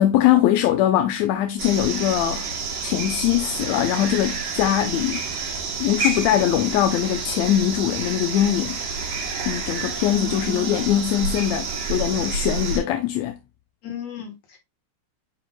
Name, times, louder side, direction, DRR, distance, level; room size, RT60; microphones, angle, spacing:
voice 1, 0.0-2.5 2.8-5.2 5.8-8.8 9.5-13.4, left 12 dB, 75° left, 1.9 m, -21 dB
sound 1, 1.6-12.8, right 4 dB, 75° right, 3.3 m, -29 dB
voice 2, 10.1-10.8 13.8-14.6, left 2 dB, 60° left, 3.0 m, -34 dB
9.7 x 5.0 x 2.2 m
omnidirectional pair, 3.3 m